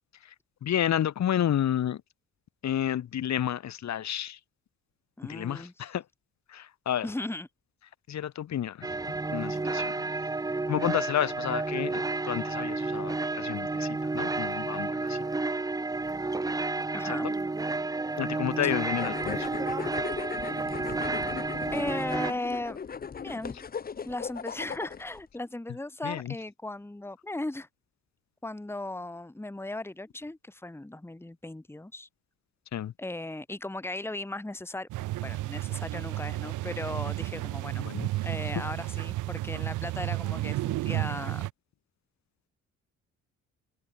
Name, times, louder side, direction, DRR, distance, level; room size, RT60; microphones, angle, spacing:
voice 1, 0.6-2.0 2.6-4.4 5.2-6.0 6.5-7.1 8.1-8.9 9.3-9.9 10.7-15.2 17.0-17.3 18.2-19.5 26.0-26.3 32.7-32.9 37.8-38.1, left 10 dB, 65° left, 2.9 m, -31 dB
voice 2, 5.2-5.7 7.0-7.5 16.9-17.3 18.6-18.7 21.0-21.3 21.7-22.8 23.2-23.7 24.0-27.7 28.4-32.1 33.0-34.9 35.2-37.8 38.2-41.4, left 2 dB, 10° left, 2.0 m, -37 dB
sound 1, 8.8-22.3, right 3 dB, 10° right, 0.7 m, -31 dB
sound 2, 18.9-25.2, left 6 dB, 30° left, 0.9 m, -38 dB
sound 3, 34.9-41.5, right 18 dB, 85° right, 0.7 m, -32 dB
cardioid pair, 90°, 30 cm